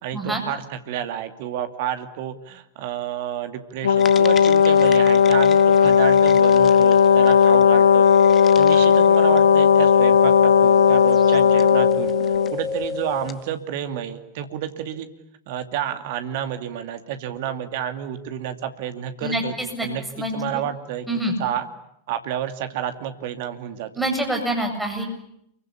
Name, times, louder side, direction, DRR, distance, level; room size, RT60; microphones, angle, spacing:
voice 1, 0.0-8.1 8.6-12.1 12.5-15.1 15.5-19.6 19.8-21.1 21.4-21.7 22.1-23.9, right 10 dB, 50° right, 8 dB, 2.6 m, -30 dB
Brass instrument, 3.8-12.6, left 7 dB, 70° left, 1.0 m, -15 dB
sound 1, 4.0-13.5, left 5 dB, 25° left, 1.3 m, -31 dB
voice 2, 19.2-19.9 20.2-20.6 21.1-21.3 24.0-25.0, right 1 dB, 5° right, 2 dB, 8.0 m, -26 dB
28.5 x 23.5 x 8.6 m, 0.77 s
figure-of-eight pair, 90°, 0 cm